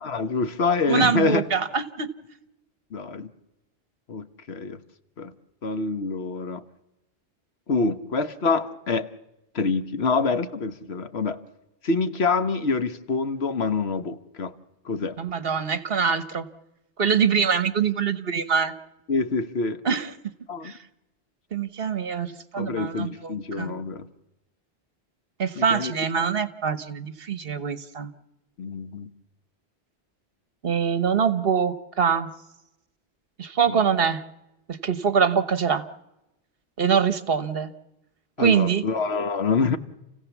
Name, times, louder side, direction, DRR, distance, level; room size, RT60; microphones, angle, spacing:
voice 1, 0.0-1.4 2.9-3.3 4.1-4.8 5.2-5.3 5.6-6.6 7.7-9.1 9.5-11.4 11.8-14.5 14.8-15.2 19.1-19.8 20.5-20.7 22.6-24.1 25.5-25.9 28.6-29.1 33.7-33.8 38.4-39.8, left 4 dB, 75° left, 10 dB, 1.4 m, -26 dB
voice 2, 0.9-2.1 15.2-16.5 17.0-18.7 19.8-20.3 20.6-20.8 21.5-23.8 25.4-28.1 30.6-32.3 33.4-34.2 34.7-35.9 36.8-37.7 38.4-38.8, right 6 dB, 65° right, 13 dB, 1.3 m, -24 dB
29.5 x 16.0 x 7.2 m, 0.93 s
omnidirectional pair, 1.1 m